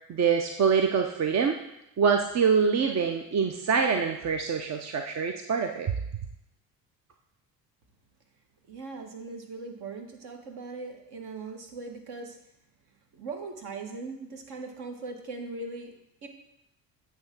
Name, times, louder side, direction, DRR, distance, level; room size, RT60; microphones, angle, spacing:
voice 1, 0.1-1.6 2.0-5.9, right 6 dB, 35° right, 5 dB, 0.7 m, -25 dB
voice 2, 8.7-12.4 13.1-15.9 16.2-16.3, right 3 dB, 50° right, 4 dB, 1.5 m, -39 dB
8.6 x 3.6 x 5.9 m, 0.82 s
hypercardioid pair, 60°, 48 cm